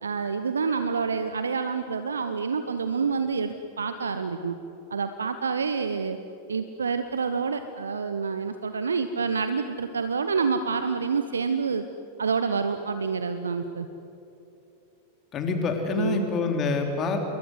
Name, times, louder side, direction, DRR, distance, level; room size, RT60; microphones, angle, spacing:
voice 1, 0.0-4.6 4.9-6.2 6.5-11.8 12.2-13.9 16.0-16.3, right 5 dB, 70° right, 10 dB, 1.0 m, -28 dB
voice 2, 15.3-17.2, left 4 dB, 30° left, 4 dB, 3.5 m, -26 dB
28.5 x 22.0 x 8.0 m, 3.0 s
figure-of-eight pair, 90°, 0 cm